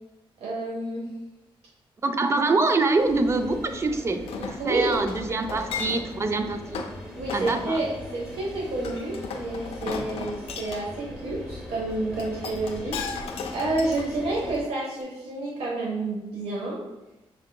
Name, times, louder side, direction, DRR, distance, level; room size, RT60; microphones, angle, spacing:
voice 1, 0.4-1.0 4.6-5.0 7.2-16.8, right 2 dB, 90° right, -4 dB, 0.9 m, -29 dB
voice 2, 2.0-6.8 7.3-7.8, right 3 dB, 30° right, 7 dB, 0.4 m, -25 dB
sound 1, 3.0-14.6, left 1 dB, 5° right, 1.0 m, -40 dB
Chink clink, 4.3-6.2 6.7-6.9 7.3-7.7 8.8-10.8 12.2-14.5 15.0-15.1, left 5 dB, 80° left, 0.4 m, -35 dB
5.6 x 3.6 x 2.2 m, 0.99 s
wide cardioid pair, 125°, 10 cm